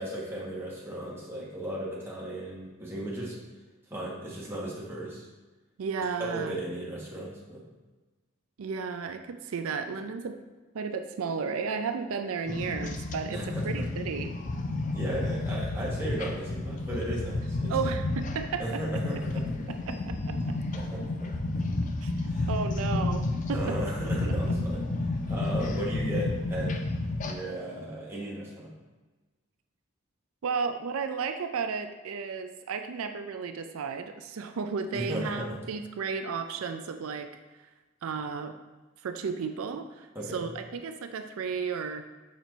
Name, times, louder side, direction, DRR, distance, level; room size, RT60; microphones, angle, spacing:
voice 1, 0.0-3.4 3.9-5.3 6.2-7.6 13.3-13.8 14.9-17.9 18.6-19.7 20.7-21.4 22.3-22.5 23.5-24.8 25.3-26.7 27.2-28.7 34.9-35.6 40.1-40.5, right 1 dB, 10° right, -5 dB, 1.3 m, -35 dB
voice 2, 5.8-6.6 8.6-10.4 10.7-13.4 13.6-14.4 17.7-18.8 19.7-20.6 22.0-22.1 22.5-23.2 23.5-23.8 30.4-37.3 38.0-38.5 39.0-42.0, right 5 dB, 90° right, 7 dB, 0.4 m, -33 dB
sound 1, 12.5-27.3, left 2 dB, 35° left, 0.4 m, -31 dB
6.2 x 4.4 x 4.0 m, 1.2 s
head